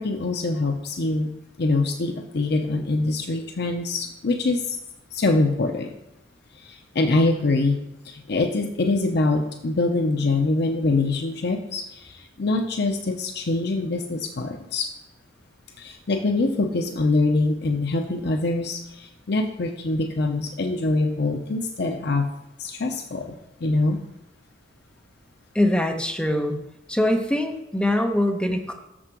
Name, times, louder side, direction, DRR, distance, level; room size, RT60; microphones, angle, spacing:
voice 1, 0.0-1.3 1.6-4.8 5.1-6.0 6.5-7.8 8.0-14.9 15.8-22.3 22.6-24.0, left 2 dB, 60° left, 5 dB, 0.7 m, -24 dB
voice 2, 25.5-26.6 26.9-28.7, left 1 dB, 5° left, 3 dB, 0.8 m, -23 dB
6.6 x 6.2 x 6.1 m, 0.91 s
head